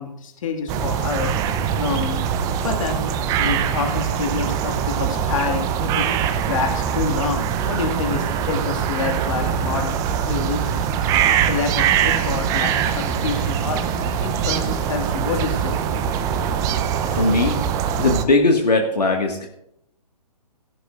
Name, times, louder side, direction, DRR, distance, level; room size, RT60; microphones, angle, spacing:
voice 1, 0.0-1.3 1.8-2.2 2.6-6.2 6.5-9.9 10.2-10.9 11.5-13.8 14.2-15.8, left 5 dB, 50° left, 3 dB, 1.9 m, -27 dB
sound 1, 0.7-18.2, right 8 dB, 15° right, 0.6 m, -22 dB
voice 2, 17.1-17.6 18.0-19.5, left 2 dB, 80° left, 2 dB, 1.6 m, -19 dB
18.0 x 11.0 x 2.5 m, 0.79 s
figure-of-eight pair, 135°, 21 cm